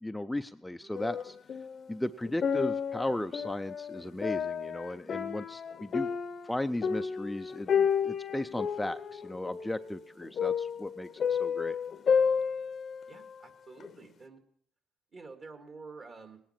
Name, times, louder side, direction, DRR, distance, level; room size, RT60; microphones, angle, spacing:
voice 1, 0.0-1.4 1.9-6.1 6.4-11.8, left 1 dB, 10° left, 9 dB, 0.4 m, -36 dB
sound 1, 0.9-1.8 2.2-13.3 13.8-13.9, left 7 dB, 55° left, 0.7 m, -31 dB
voice 2, 13.1-14.4 15.1-16.4, right 4 dB, 45° right, 6 dB, 2.1 m, -49 dB
18.5 x 10.0 x 4.4 m, 0.62 s
supercardioid pair, 70°, 0 cm